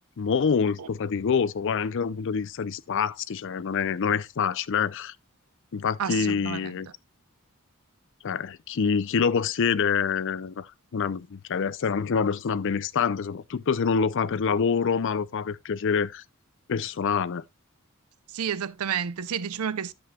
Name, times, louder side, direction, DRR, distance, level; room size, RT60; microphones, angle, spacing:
voice 1, 0.2-5.1 5.7-6.9 8.2-16.2 16.7-17.4, left 6 dB, 60° left, 0.5 m, -26 dB
voice 2, 6.0-6.7 18.3-19.9, right 7 dB, 85° right, 0.5 m, -30 dB
10.5 x 7.9 x 2.3 m
head